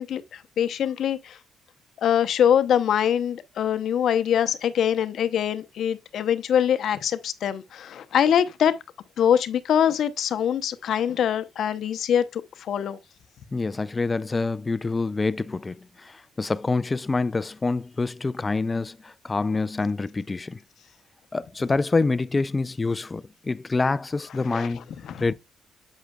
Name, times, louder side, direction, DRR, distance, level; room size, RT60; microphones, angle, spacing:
voice 1, 0.0-1.4 2.0-8.8 9.2-13.0 24.4-25.3, left 9 dB, 70° left, 0.8 m, -24 dB
voice 2, 13.5-20.6 21.3-24.9 25.2-25.3, left 3 dB, 25° left, 0.4 m, -26 dB
8.1 x 7.5 x 2.3 m
cardioid pair, 90°, 0 cm